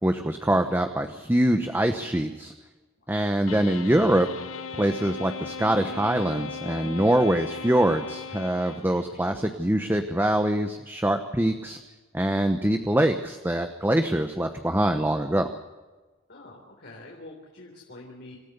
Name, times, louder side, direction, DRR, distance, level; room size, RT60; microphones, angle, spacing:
voice 1, 0.0-2.5 3.1-4.3 4.7-11.8 12.1-15.5, right 1 dB, 10° right, 6 dB, 1.0 m, -24 dB
voice 2, 3.0-3.3 16.3-18.4, left 2 dB, 55° left, -1 dB, 3.9 m, -46 dB
sound 1, 3.5-9.3, left 5 dB, 85° left, 1.2 m, -37 dB
26.5 x 14.5 x 6.8 m, 1.2 s
head